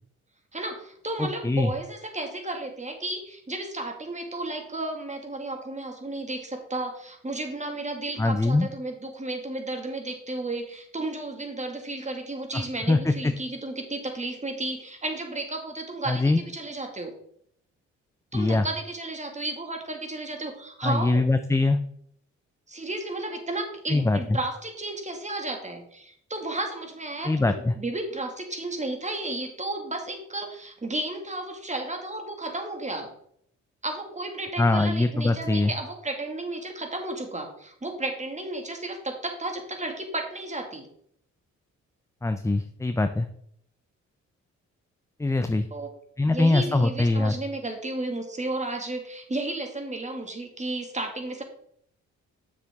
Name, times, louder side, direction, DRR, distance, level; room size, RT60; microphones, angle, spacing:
voice 1, 0.5-17.1 18.3-21.3 22.7-33.1 33.8-40.9 45.7-45.9 46.3-51.4, right 2 dB, 25° right, 3 dB, 2.1 m, -33 dB
voice 2, 1.2-1.7 8.2-8.7 12.5-13.3 16.1-16.4 18.3-18.7 20.8-21.8 23.9-24.2 27.2-27.7 34.6-35.7 42.2-43.3 45.2-45.7 46.2-47.3, left 2 dB, 10° left, 8 dB, 0.6 m, -23 dB
7.2 x 6.8 x 3.6 m, 0.67 s
supercardioid pair, 60°, 30 cm